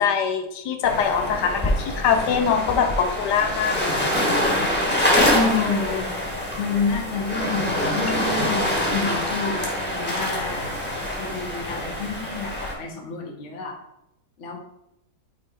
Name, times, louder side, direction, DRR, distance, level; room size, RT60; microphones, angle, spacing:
voice 1, 0.0-4.1 5.3-6.0, left 6 dB, 90° left, 5 dB, 1.3 m, -23 dB
sound 1, 0.8-12.7, left 1 dB, 5° left, 1.3 m, -25 dB
voice 2, 5.4-6.2 6.6-10.8 11.2-13.8 14.4-14.6, left 4 dB, 50° left, 1 dB, 1.3 m, -30 dB
6.3 x 3.5 x 4.3 m, 0.84 s
omnidirectional pair, 1.8 m